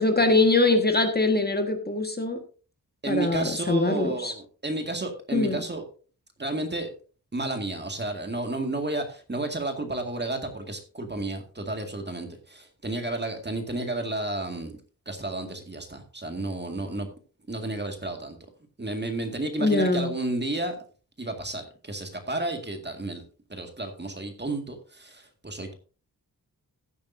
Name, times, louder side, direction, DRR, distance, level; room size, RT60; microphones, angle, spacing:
voice 1, 0.0-2.4 3.0-4.3 5.3-5.6 19.6-20.1, left 2 dB, 25° left, 5 dB, 1.6 m, -23 dB
voice 2, 3.0-5.8 6.4-6.9 7.3-14.7 15.1-17.1 17.5-18.4 18.8-20.8 21.2-23.2 23.5-25.7, right 2 dB, 30° right, 5 dB, 2.0 m, -32 dB
15.5 x 8.7 x 2.7 m, 0.37 s
wide cardioid pair, 80°, 36 cm